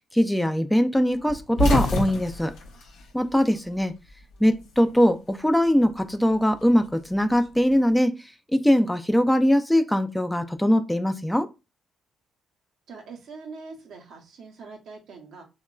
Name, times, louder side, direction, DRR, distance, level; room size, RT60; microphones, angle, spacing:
voice 1, 0.1-2.5 3.1-3.9 4.4-11.5, equal, 5° left, 0.3 m, -21 dB
sound 1, 1.3-3.8 4.1-5.2 6.3-7.8, equal, 75° left, 0.6 m, -28 dB
voice 2, 12.9-15.4, right 4 dB, 65° right, 0.7 m, -43 dB
2.9 x 2.1 x 2.2 m
hypercardioid pair, 50°, 0 cm